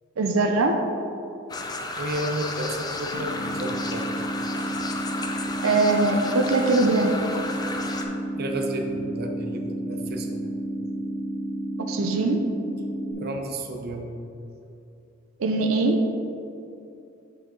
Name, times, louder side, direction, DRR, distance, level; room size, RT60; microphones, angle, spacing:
voice 1, 0.2-0.8 5.6-7.1 11.8-12.4 15.4-16.0, right 3 dB, 85° right, 4 dB, 0.6 m, -22 dB
sound 1, 1.5-8.0, left 2 dB, 20° left, 0.5 m, -33 dB
voice 2, 1.9-4.1 8.4-10.4 13.2-14.1, right 1 dB, 50° right, 3 dB, 0.7 m, -32 dB
sound 2, 3.1-13.1, right 1 dB, 65° right, 1.1 m, -31 dB
8.9 x 4.7 x 3.8 m, 2.7 s
head